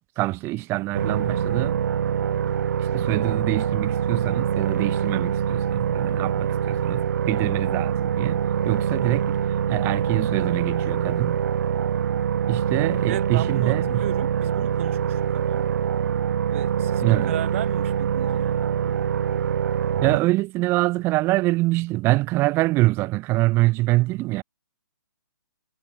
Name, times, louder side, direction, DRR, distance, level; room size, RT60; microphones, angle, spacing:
voice 1, 0.2-1.8 2.8-11.4 12.5-14.1 17.0-17.4 20.0-24.4, right 20 dB, 25° right, 1.2 m, -25 dB
sound 1, 0.9-20.2, right 8 dB, 60° right, 1.1 m, -24 dB
voice 2, 13.1-15.7 16.5-18.7, right 14 dB, 40° right, 0.7 m, -35 dB
figure-of-eight pair, 135°, 11 cm